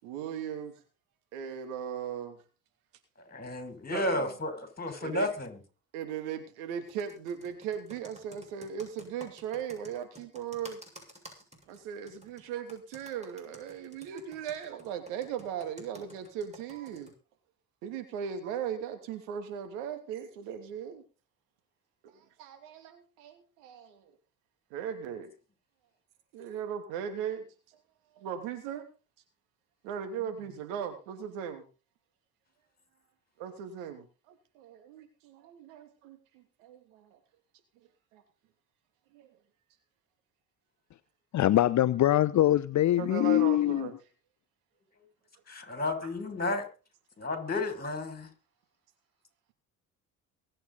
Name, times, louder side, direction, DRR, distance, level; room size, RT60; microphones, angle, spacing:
voice 1, 0.0-0.8 1.3-2.4 3.9-4.3 5.0-5.3 5.9-10.8 11.7-17.1 17.8-21.0 22.0-24.0 24.7-25.3 26.3-27.5 28.1-28.8 29.8-31.6 33.4-37.2 38.1-38.2 39.1-39.3 43.0-43.9, right 8 dB, 80° right, 2.9 m, -38 dB
voice 2, 3.3-5.6 30.2-30.3 45.5-46.7 47.2-48.3, left 2 dB, 20° left, 5.8 m, -32 dB
Computer keyboard, 6.9-17.1, equal, 15° right, 6.9 m, -52 dB
voice 3, 41.3-43.9, left 13 dB, 45° left, 0.7 m, -23 dB
23.0 x 8.9 x 4.1 m
hypercardioid pair, 65°, 42 cm